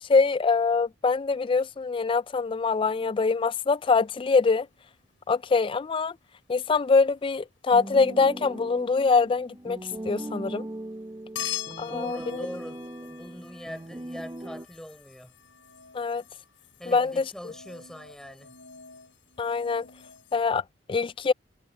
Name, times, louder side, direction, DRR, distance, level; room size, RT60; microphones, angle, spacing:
voice 1, 0.0-4.7 5.3-6.1 6.5-9.8 10.0-10.7 11.8-12.5 15.9-16.2 16.9-17.5 19.4-19.9 20.3-20.6 20.9-21.3, left 4 dB, 25° left, 0.3 m, -24 dB
sound 1, 4.0-5.2 5.8-6.2 9.4-10.0 11.4-20.5, left 10 dB, 85° left, 7.5 m, -43 dB
sound 2, 7.7-14.7, right 1 dB, 20° right, 0.7 m, -39 dB
voice 2, 11.7-15.3 16.8-18.5, equal, 5° left, 5.8 m, -42 dB
head